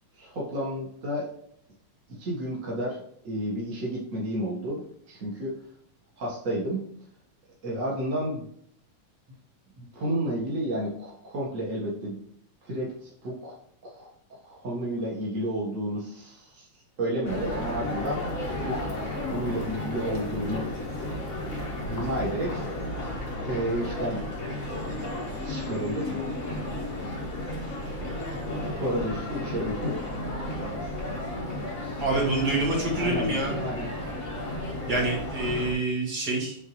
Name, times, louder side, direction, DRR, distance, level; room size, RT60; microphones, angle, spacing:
voice 1, 0.1-1.3 2.1-5.6 6.2-6.8 7.6-8.5 9.8-12.2 12.6-13.6 13.8-16.7 17.0-18.2 18.6-20.7 21.9-22.6 23.4-24.3 25.4-26.2 28.8-30.0 30.5-30.6 33.0-33.9, equal, 50° right, -4 dB, 0.9 m, -31 dB
sound 1, 17.2-35.7, left 1 dB, 35° left, 1.3 m, -33 dB
voice 2, 32.0-33.5 34.9-36.6, right 2 dB, 35° right, -4 dB, 2.3 m, -26 dB
8.1 x 3.8 x 3.1 m, 0.68 s
omnidirectional pair, 3.7 m